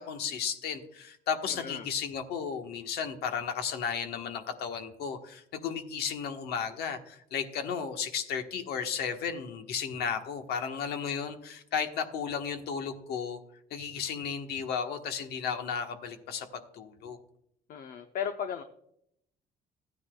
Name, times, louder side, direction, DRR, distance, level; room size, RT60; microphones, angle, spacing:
voice 1, 0.0-13.4 13.7-17.2, left 7 dB, 70° left, 6 dB, 1.3 m, -34 dB
voice 2, 1.5-1.9 17.7-18.6, left 8 dB, 55° left, 7 dB, 0.8 m, -35 dB
14.0 x 9.6 x 2.3 m, 0.71 s
cardioid pair, 110°, 17 cm